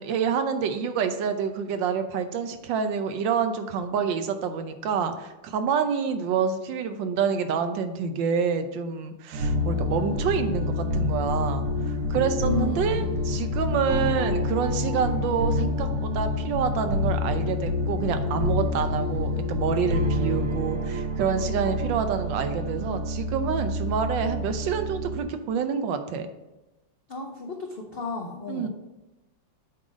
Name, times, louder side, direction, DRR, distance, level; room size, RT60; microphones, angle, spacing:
voice 1, 0.0-26.3 28.5-28.7, right 6 dB, 80° right, 8 dB, 1.4 m, -27 dB
sound 1, 9.3-25.2, left 2 dB, 55° right, 1.0 m, -27 dB
voice 2, 12.4-13.2 27.1-28.7, left 4 dB, 65° left, 1 dB, 0.5 m, -33 dB
8.5 x 3.9 x 5.0 m, 1.0 s
omnidirectional pair, 2.0 m